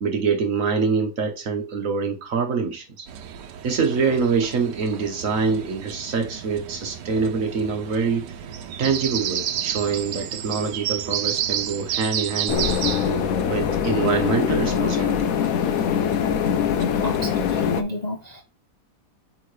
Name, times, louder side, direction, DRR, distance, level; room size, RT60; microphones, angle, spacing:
voice 1, 0.0-3.1 3.6-8.3 8.8-12.8 13.4-15.3, right 5 dB, 55° right, 1.3 m, -25 dB
sound 1, 3.1-17.7, right 10 dB, 80° right, 1.3 m, -32 dB
sound 2, 12.5-17.8, left 8 dB, 65° left, 0.9 m, -23 dB
voice 2, 17.0-18.4, left 1 dB, 35° left, 0.7 m, -31 dB
8.3 x 3.7 x 3.2 m
omnidirectional pair, 1.8 m